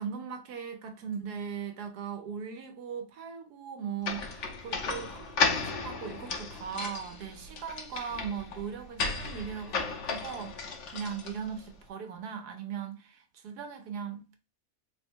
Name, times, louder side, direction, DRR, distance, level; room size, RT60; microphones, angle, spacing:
voice 1, 0.0-14.4, right 7 dB, 80° right, 1.3 m, -39 dB
sound 1, 4.0-11.7, left 4 dB, 55° left, 1.1 m, -34 dB
3.8 x 2.2 x 4.4 m
omnidirectional pair, 1.7 m